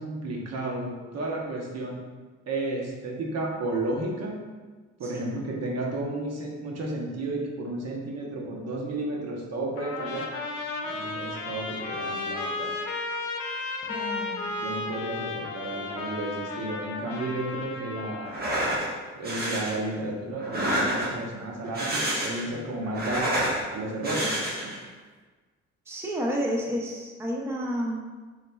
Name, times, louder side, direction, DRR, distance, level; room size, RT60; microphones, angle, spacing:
voice 1, 0.0-2.0 2.5-4.4 5.0-10.3 10.8-12.7 14.6-18.3 19.2-24.7, right 2 dB, 55° right, -2 dB, 0.9 m, -32 dB
Trumpet, 9.8-18.4, left 3 dB, 85° left, 0.6 m, -34 dB
voice 2, 13.8-14.5 25.9-28.1, equal, 10° right, -1 dB, 0.6 m, -31 dB
sound 1, 18.2-18.9 19.2-19.8 20.4-21.3 21.6-22.5 22.8-23.6 24.0-24.8, right 1 dB, 30° right, 1.2 m, -28 dB
4.1 x 4.1 x 2.3 m, 1.4 s
cardioid pair, 90°, 30 cm